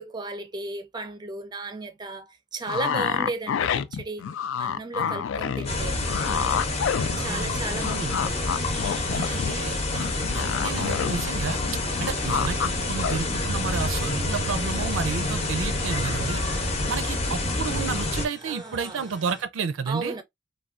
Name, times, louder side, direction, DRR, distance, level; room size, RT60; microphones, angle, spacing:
voice 1, 0.0-4.2 4.6-6.0 7.2-7.9 8.2-8.5 18.4-19.1 19.9-20.2, right 3 dB, 25° right, 0.5 m, -35 dB
sound 1, 2.7-7.5 7.8-11.3 11.5-12.7 13.0-13.2, left 7 dB, 75° left, 0.3 m, -28 dB
sound 2, 5.6-18.3, left 2 dB, 35° left, 0.8 m, -28 dB
voice 2, 7.1-8.3 9.1-16.4 16.9-20.2, right 5 dB, 90° right, 0.5 m, -32 dB
sound 3, 8.1-19.4, left 1 dB, 5° left, 0.9 m, -45 dB
3.3 x 2.2 x 2.4 m
head